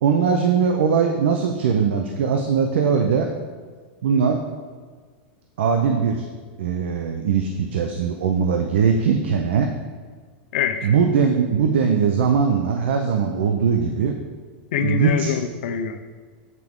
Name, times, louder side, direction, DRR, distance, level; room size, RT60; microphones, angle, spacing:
voice 1, 0.0-3.3 4.0-4.4 5.6-6.2 6.6-9.7 10.8-14.1 14.8-15.3, right 6 dB, 85° right, 4 dB, 0.6 m, -20 dB
voice 2, 10.5-10.9 14.7-16.2, left 8 dB, 75° left, 7 dB, 0.6 m, -25 dB
8.2 x 4.5 x 3.6 m, 1.5 s
supercardioid pair, 155°, 6 cm